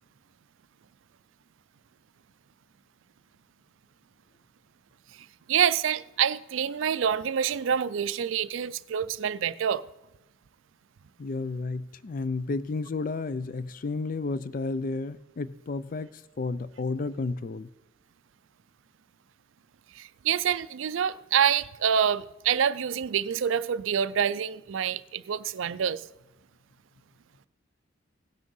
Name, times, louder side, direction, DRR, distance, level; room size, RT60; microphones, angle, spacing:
voice 1, 5.1-9.8 19.9-26.0, right 8 dB, 70° right, 0.4 m, -27 dB
voice 2, 11.2-17.7, left 3 dB, 40° left, 0.4 m, -32 dB
17.0 x 6.2 x 5.5 m
head